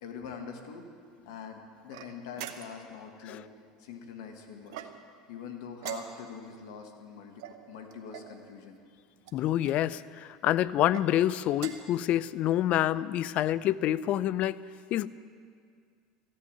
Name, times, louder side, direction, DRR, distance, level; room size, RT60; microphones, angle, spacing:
voice 1, 0.0-0.9 1.2-3.5 3.8-4.9 5.3-8.8, left 6 dB, 75° left, 4 dB, 1.6 m, -44 dB
sound 1, 1.9-3.0 4.7-5.2 5.8-6.5 7.4-8.3 9.2-9.8 10.7-11.1 11.5-12.0, right 10 dB, 70° right, 0.9 m, -43 dB
voice 2, 9.3-14.6 14.9-15.1, left 12 dB, 50° left, 17 dB, 0.4 m, -27 dB
14.0 x 8.5 x 8.4 m, 2.1 s
hypercardioid pair, 80°, 3 cm